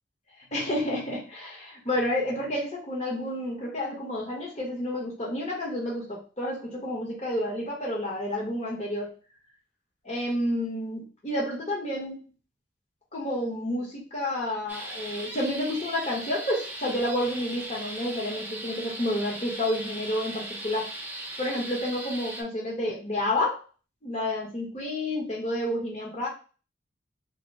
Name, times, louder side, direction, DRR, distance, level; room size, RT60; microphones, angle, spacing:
voice 1, 0.5-9.1 10.0-12.2 13.1-20.9 21.4-23.6 24.0-26.3, left 1 dB, 35° left, -3 dB, 1.1 m, -30 dB
sound 1, 14.7-22.4, right 1 dB, 10° right, 0.6 m, -38 dB
4.0 x 2.1 x 3.2 m, 0.35 s
head